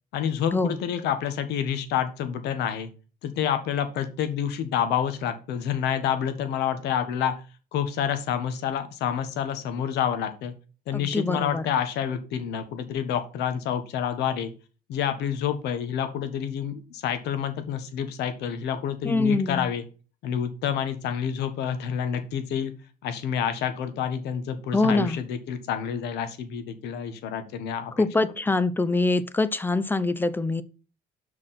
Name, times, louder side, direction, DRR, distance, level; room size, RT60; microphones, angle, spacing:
voice 1, 0.1-2.9 3.2-7.3 7.7-10.5 10.9-14.5 14.9-19.8 20.2-22.7 23.0-28.0, left 8 dB, 85° left, 1.5 m, -28 dB
voice 2, 10.9-11.7 19.0-19.7 24.7-25.2 28.0-30.6, left 3 dB, 10° left, 0.7 m, -24 dB
6.1 x 5.0 x 5.9 m
cardioid pair, 110°, 17 cm